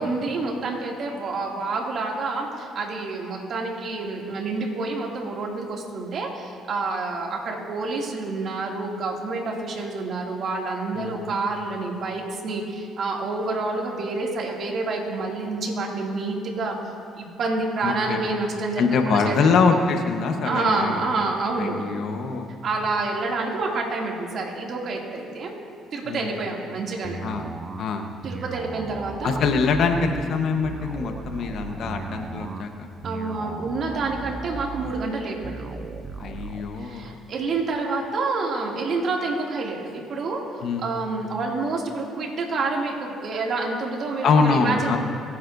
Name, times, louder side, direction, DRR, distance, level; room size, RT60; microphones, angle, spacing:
voice 1, 0.0-16.8 17.2-19.5 20.4-21.8 22.6-25.5 25.9-27.2 28.2-29.4 33.0-35.8 36.8-40.4 40.8-45.0, right 3 dB, 55° right, -1 dB, 2.6 m, -28 dB
voice 2, 17.8-18.2 18.8-21.0 21.6-22.5 26.0-26.4 27.2-27.5 27.8-28.1 29.2-32.9 36.2-37.2 40.6-40.9 44.2-45.0, left 4 dB, 65° left, 5 dB, 1.2 m, -24 dB
sound 1, 27.0-36.6, right 4 dB, 40° right, 0.8 m, -36 dB
26.5 x 9.3 x 2.7 m, 2.3 s
supercardioid pair, 75°, 0 cm